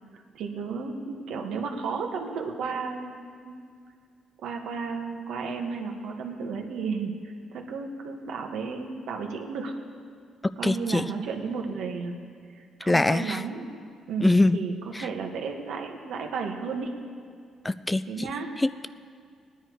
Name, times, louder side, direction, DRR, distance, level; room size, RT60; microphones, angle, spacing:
voice 1, 0.3-3.2 3.4-3.6 4.4-9.7 10.6-12.2 12.5-13.6 14.1-17.0 18.1-18.5, right 5 dB, 80° right, 2 dB, 1.6 m, -33 dB
voice 2, 10.4-11.0 12.8-13.4 14.2-14.6 14.9-15.1 17.6-18.3 18.6-18.9, left 2 dB, 15° left, 14 dB, 0.4 m, -23 dB
20.0 x 10.0 x 4.8 m, 2.1 s
cardioid pair, 90°, 0 cm